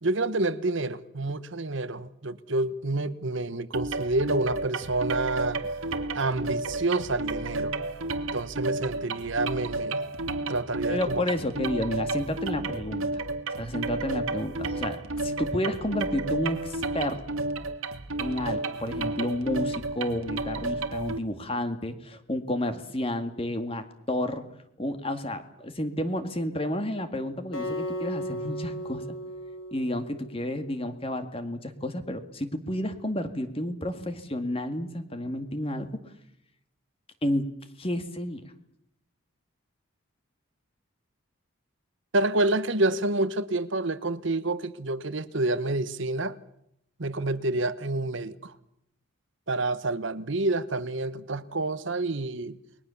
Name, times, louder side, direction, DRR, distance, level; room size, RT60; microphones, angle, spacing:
voice 1, 0.0-5.7 6.1-7.8 8.3-10.0 10.5-11.2 42.1-46.4 47.0-48.5 49.5-52.6, right 2 dB, 60° right, 1.1 m, -28 dB
sound 1, 3.7-21.2, right 2 dB, 90° right, 1.9 m, -32 dB
voice 2, 10.9-13.1 13.5-15.0 15.2-17.2 18.2-24.4 24.8-29.1 29.7-35.9 37.2-37.4 37.8-38.4, left 1 dB, 25° left, 2.1 m, -31 dB
Acoustic guitar, 27.5-30.8, equal, 75° left, 7.6 m, -35 dB
29.5 x 21.5 x 7.2 m
head